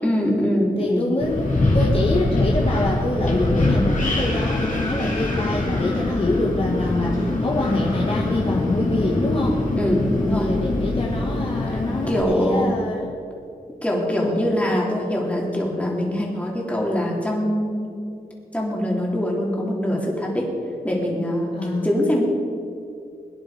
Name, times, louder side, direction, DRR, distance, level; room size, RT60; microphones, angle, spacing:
voice 1, 0.0-1.1 9.8-10.5 12.1-12.7 13.8-17.9 18.5-20.5 20.8-22.2, equal, 10° left, -3 dB, 3.4 m, -23 dB
voice 2, 0.8-9.6 10.3-13.1 14.2-14.5 21.5-21.9, left 2 dB, 35° left, -3 dB, 1.8 m, -25 dB
Wind, 1.2-12.2, left 2 dB, 55° left, 3.3 m, -23 dB
22.0 x 10.5 x 5.1 m, 2.5 s
wide cardioid pair, 105°, 16 cm